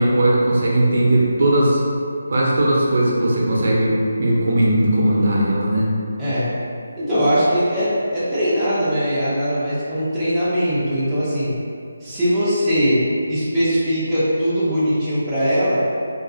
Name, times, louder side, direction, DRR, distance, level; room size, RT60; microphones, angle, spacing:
voice 1, 0.0-1.8 2.3-5.9, right 1 dB, 55° right, -5 dB, 0.5 m, -18 dB
voice 2, 6.2-6.5 7.0-11.5 12.0-13.0 13.3-15.8, equal, 5° right, -14 dB, 0.5 m, -20 dB
2.5 x 2.3 x 2.5 m, 2.4 s
figure-of-eight pair, 165°, 0 cm